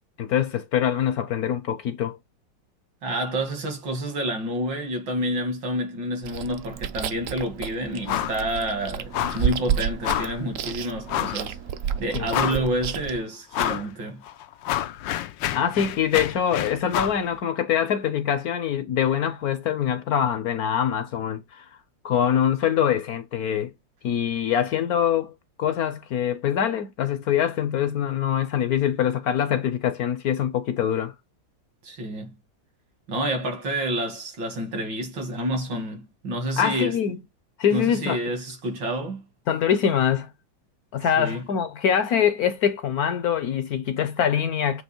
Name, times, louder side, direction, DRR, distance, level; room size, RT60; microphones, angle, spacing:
voice 1, 0.2-2.2 12.1-12.6 15.5-21.6 22.0-23.7 24.0-25.3 25.6-31.1 36.6-37.2 37.6-38.2 39.5-40.3 40.9-44.8, left 9 dB, 65° left, 1.1 m, -24 dB
voice 2, 3.0-11.6 12.0-14.2 31.8-32.3 33.1-37.0 37.7-39.2 41.1-41.4, right 1 dB, 80° right, 2.9 m, -29 dB
Chewing mastication, 6.2-13.2, right 9 dB, 60° right, 0.8 m, -31 dB
sound 1, 8.1-8.4 8.7-8.8 9.1-9.5 10.0-10.4 11.1-11.4 11.9-12.0 12.3-12.8 13.5-13.9 14.3-17.2, left 12 dB, 80° left, 1.3 m, -28 dB
7.9 x 2.9 x 4.4 m
omnidirectional pair, 2.0 m